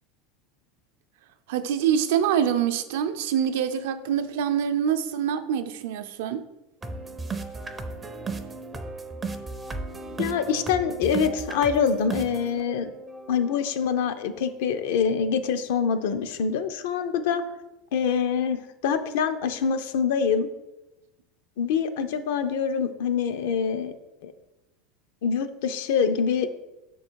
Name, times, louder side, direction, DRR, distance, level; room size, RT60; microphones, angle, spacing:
voice 1, 1.5-6.5, right 9 dB, 75° right, 0.5 m, -25 dB
sound 1, 6.8-14.8, right 3 dB, 15° right, 0.4 m, -36 dB
voice 2, 10.2-12.9 13.3-17.4 17.9-20.5 21.6-23.9 24.2-24.3 25.2-26.5, left 6 dB, 75° left, 0.6 m, -25 dB
6.3 x 3.8 x 4.5 m
supercardioid pair, 150°, 0 cm